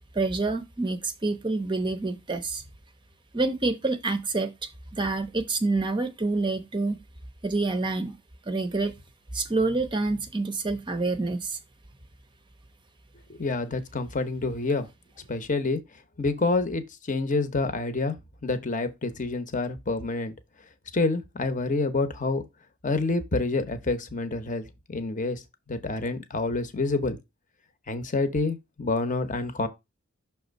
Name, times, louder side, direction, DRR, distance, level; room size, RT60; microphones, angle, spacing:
voice 1, 0.1-2.6 3.3-7.0 7.4-8.2 8.5-9.0 9.3-11.6, right 3 dB, 20° right, 0.6 m, -27 dB
voice 2, 13.3-14.9 15.3-15.8 16.2-16.8 17.1-18.2 18.4-20.3 20.9-22.4 22.8-25.4 25.7-27.2 27.9-29.7, left 3 dB, 35° left, 0.8 m, -27 dB
6.1 x 3.5 x 5.1 m
head